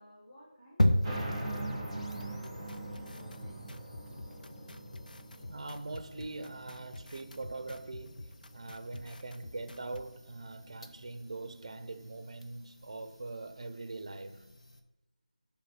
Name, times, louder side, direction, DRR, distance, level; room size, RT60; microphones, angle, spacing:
voice 1, 0.0-3.8, equal, 20° left, 1.4 m, -57 dB
sound 1, 0.8-14.8, left 1 dB, 45° left, 1.0 m, -38 dB
sound 2, 1.0-12.1, right 1 dB, 5° left, 2.0 m, -43 dB
sound 3, 2.2-10.1, left 2 dB, 75° left, 0.4 m, -48 dB
voice 2, 5.5-14.5, right 3 dB, 35° right, 0.5 m, -42 dB
7.3 x 3.5 x 6.0 m
figure-of-eight pair, 175°, 5 cm